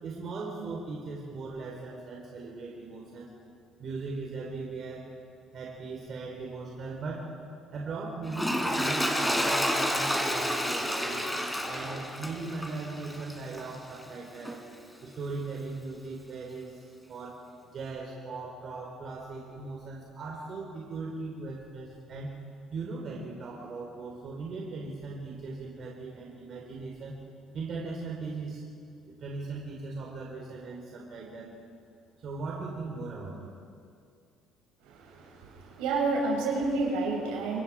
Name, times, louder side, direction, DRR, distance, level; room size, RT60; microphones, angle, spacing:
voice 1, 0.0-3.3 3.8-5.1 5.5-7.3 7.7-11.3 11.6-14.6 15.0-16.8 17.1-17.4 17.6-22.4 22.7-27.2 27.5-28.6 29.0-31.5 32.2-33.5, right 3 dB, 55° right, -2 dB, 4.2 m, -38 dB
Toilet flush, 8.3-13.8 14.4-14.6, equal, 5° left, 3.9 m, -30 dB
voice 2, 34.8-37.6, right 3 dB, 80° right, -2 dB, 7.0 m, -30 dB
28.0 x 22.0 x 5.0 m, 2.3 s
hypercardioid pair, 60°, 0 cm